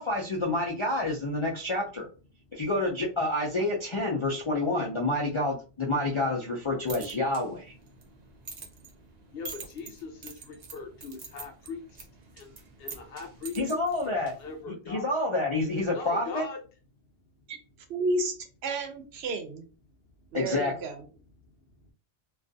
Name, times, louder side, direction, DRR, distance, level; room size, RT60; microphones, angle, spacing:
voice 1, 0.0-2.1 2.5-7.7 13.6-14.3 14.9-16.4 20.3-20.7, left 2 dB, 45° left, -2 dB, 0.4 m, -28 dB
sound 1, 6.6-14.6, right 4 dB, 50° right, 0.6 m, -46 dB
voice 2, 9.3-12.1 12.3-12.5 12.8-13.6 14.0-14.1 14.4-15.1 15.9-16.6, left 4 dB, 65° left, 4 dB, 0.8 m, -40 dB
voice 3, 17.9-18.4 18.6-19.6 20.3-21.0, right 2 dB, 75° right, 6 dB, 0.8 m, -31 dB
2.4 x 2.3 x 2.6 m, 0.34 s
omnidirectional pair, 1.1 m